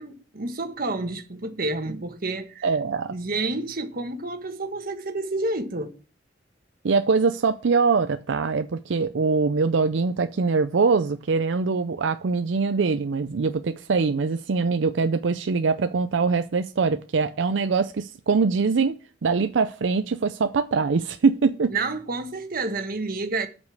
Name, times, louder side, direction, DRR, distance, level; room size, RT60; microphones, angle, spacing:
voice 1, 0.0-2.7 3.1-5.9 21.7-23.5, right 2 dB, 55° right, 1.4 m, -29 dB
voice 2, 2.6-3.1 6.8-19.0 19.2-21.7, right 4 dB, 85° right, 0.5 m, -23 dB
8.3 x 5.2 x 6.3 m
head